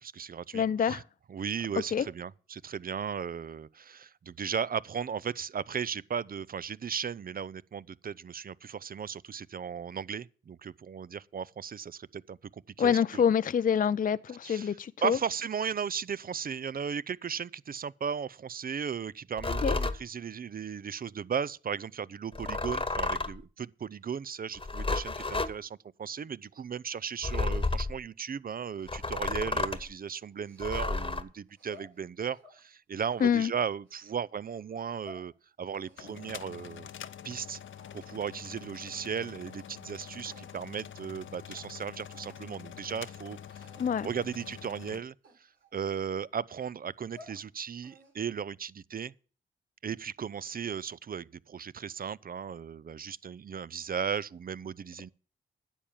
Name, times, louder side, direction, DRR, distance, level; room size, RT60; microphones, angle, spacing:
voice 1, 0.0-1.0 1.3-13.2 14.4-35.3 35.6-36.9 37.2-37.6 37.9-43.7 44.0-49.1 49.8-55.1, right 7 dB, 45° right, 0.5 m, -36 dB
voice 2, 0.5-1.0 1.9-2.0 12.8-15.2 19.6-19.8 33.2-33.5 43.8-44.1, left 7 dB, 45° left, 0.4 m, -26 dB
sound 1, 19.4-20.0 22.3-23.4 24.5-25.5 27.2-28.0 28.9-29.9 30.6-31.2, left 3 dB, 25° left, 1.2 m, -31 dB
sound 2, 29.7-31.0 31.5-32.6 33.1-34.1 34.7-35.3 35.7-37.4 37.7-38.3 38.8-39.2 39.9-40.0 40.3-40.8 41.2-41.3 41.5-41.7 42.1-42.5 42.8-43.1 43.6-44.0 44.5-44.8 45.2-46.4 46.9-47.4 47.8-48.3, left 1 dB, 75° right, 3.9 m, -56 dB
sound 3, 35.7-45.0, left 9 dB, 75° left, 0.7 m, -46 dB
10.0 x 7.1 x 7.3 m
supercardioid pair, 45°, 20 cm